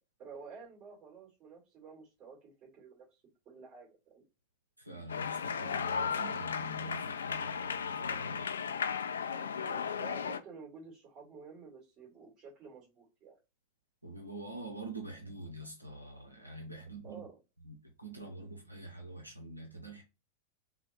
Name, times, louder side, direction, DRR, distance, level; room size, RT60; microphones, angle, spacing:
voice 1, 0.2-3.1 3.5-4.2 9.5-13.4 17.0-17.4, right 5 dB, 30° right, 2.3 m, -51 dB
voice 2, 4.8-8.6 14.0-17.2 17.6-20.0, right 1 dB, 85° right, 0.7 m, -45 dB
sound 1, 5.1-10.4, left 6 dB, 70° left, 0.3 m, -35 dB
3.9 x 2.1 x 4.1 m
figure-of-eight pair, 90°, 0 cm